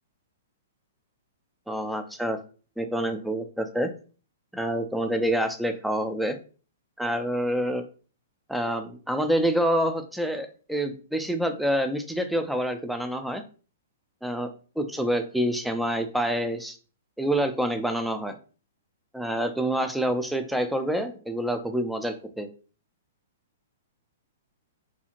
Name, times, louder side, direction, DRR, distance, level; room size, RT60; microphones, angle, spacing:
voice 1, 1.7-2.4 2.8-3.9 4.5-6.4 7.0-7.8 8.5-13.4 14.2-14.5 14.8-16.8 17.2-18.4 19.1-22.5, equal, ahead, 7 dB, 0.3 m, -27 dB
2.7 x 2.4 x 2.8 m, 0.38 s
hypercardioid pair, 125°, 0 cm